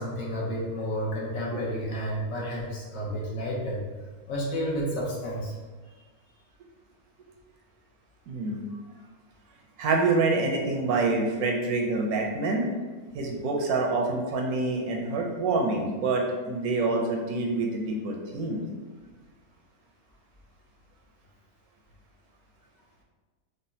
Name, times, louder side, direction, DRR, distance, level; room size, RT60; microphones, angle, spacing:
voice 1, 0.0-3.8 4.3-5.5, equal, 65° left, -4 dB, 1.2 m, -31 dB
voice 2, 8.3-8.7 9.8-12.7 13.1-18.6, right 3 dB, 80° right, 0 dB, 1.1 m, -26 dB
4.9 x 2.2 x 2.7 m, 1.3 s
omnidirectional pair, 1.6 m